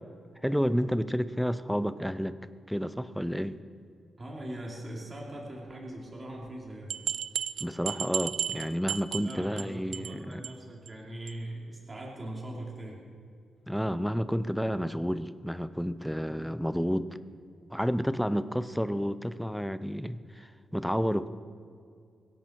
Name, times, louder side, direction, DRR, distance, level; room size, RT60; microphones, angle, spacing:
voice 1, 0.4-2.4 2.7-3.6 7.6-10.4 13.7-17.1 17.7-21.3, equal, ahead, 13 dB, 0.5 m, -30 dB
voice 2, 4.2-7.0 9.2-13.0, right 1 dB, 20° right, -2 dB, 2.8 m, -41 dB
sound 1, 6.9-9.6 9.9-10.2 10.4-10.5 10.9-11.0 11.3-11.4, right 9 dB, 85° right, 0.4 m, -33 dB
24.0 x 10.0 x 4.5 m, 2.3 s
wide cardioid pair, 150°, 0 cm